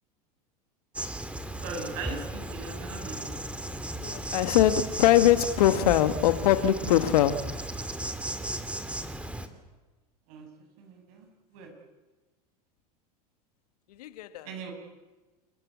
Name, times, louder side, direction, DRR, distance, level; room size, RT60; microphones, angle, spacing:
Insect, 1.0-9.5, right 1 dB, 5° right, 2.6 m, -35 dB
voice 1, 1.6-3.4 10.3-10.5 10.8-11.7 14.4-14.7, right 4 dB, 60° right, 7.8 m, -40 dB
voice 2, 4.0-7.5 14.0-14.5, left 12 dB, 70° left, 1.8 m, -22 dB
30.0 x 22.5 x 8.6 m
hypercardioid pair, 90°, 20 cm